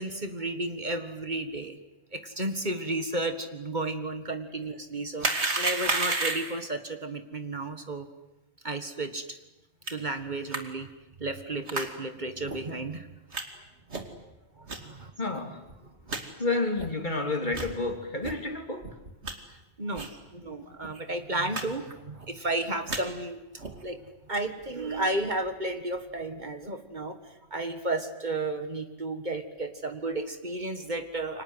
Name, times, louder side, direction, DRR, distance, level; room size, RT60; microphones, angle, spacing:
voice 1, 0.0-1.8 2.1-8.1 8.6-9.4 9.9-10.9 11.2-13.1 14.6-15.1 19.5-24.0 24.3-31.4, right 2 dB, 45° right, 7 dB, 1.9 m, -33 dB
sound 1, 5.2-6.6 9.9-10.0 10.5-10.6 11.7-11.9 12.5-12.6 13.3-13.4 13.9-14.2 14.7-14.8 15.4-15.5 15.7-15.8 16.1-16.2 16.8-16.9 17.5-17.7 18.2-18.4 18.8-19.3 20.0-20.2 20.4-20.5 20.8-21.0 21.5-21.6 21.9-22.3 22.7-23.0 23.6-23.9, right 3 dB, 80° right, 2.9 m, -31 dB
voice 2, 15.2-15.6 16.4-18.9 20.4-20.6, left 3 dB, 45° left, 4 dB, 3.2 m, -30 dB
29.5 x 25.0 x 8.1 m, 0.92 s
omnidirectional pair, 1.1 m